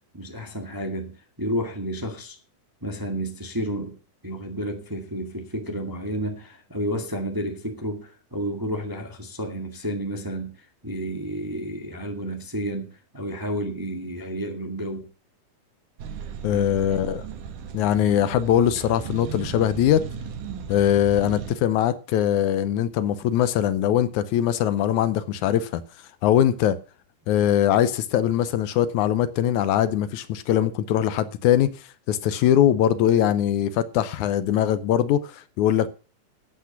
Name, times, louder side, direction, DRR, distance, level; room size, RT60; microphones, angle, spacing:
voice 1, 0.1-2.4 2.8-3.9 4.2-10.5 10.8-15.1 16.5-16.7, equal, 10° right, 1.2 m, -31 dB
sound 1, 16.0-21.6, right 7 dB, 85° right, 2.8 m, -36 dB
voice 2, 16.4-17.3 17.7-20.0 20.7-25.8 26.2-26.8 27.3-35.9, left 11 dB, 75° left, 2.1 m, -21 dB
12.5 x 8.3 x 5.9 m
omnidirectional pair, 3.6 m